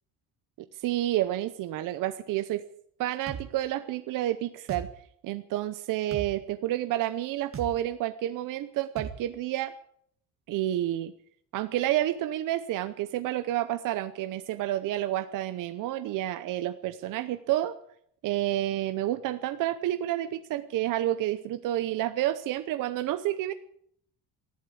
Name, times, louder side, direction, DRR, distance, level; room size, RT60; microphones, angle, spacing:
voice 1, 0.6-2.6 3.0-4.9 5.2-9.7 10.5-11.1 11.5-17.8 18.2-23.5, right 13 dB, 60° right, 11 dB, 0.8 m, -29 dB
sound 1, 3.3-3.5 4.7-4.9 6.1-6.3 7.5-7.7 9.0-9.2, right 7 dB, 35° right, 1.9 m, -36 dB
13.5 x 11.5 x 8.5 m, 0.68 s
cardioid pair, 165°, 36 cm